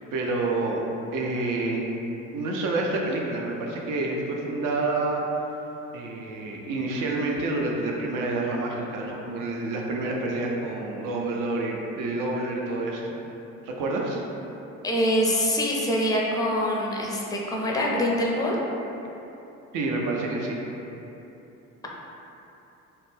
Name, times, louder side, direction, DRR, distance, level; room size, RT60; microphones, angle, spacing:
voice 1, 0.1-0.8 1.1-2.0 2.3-5.2 5.9-13.1 13.6-14.2 19.7-20.6, right 2 dB, 55° right, -1 dB, 0.6 m, -28 dB
voice 2, 14.8-18.6, equal, 10° left, -2 dB, 0.5 m, -24 dB
2.4 x 2.2 x 3.2 m, 3.0 s
hypercardioid pair, 50°, 38 cm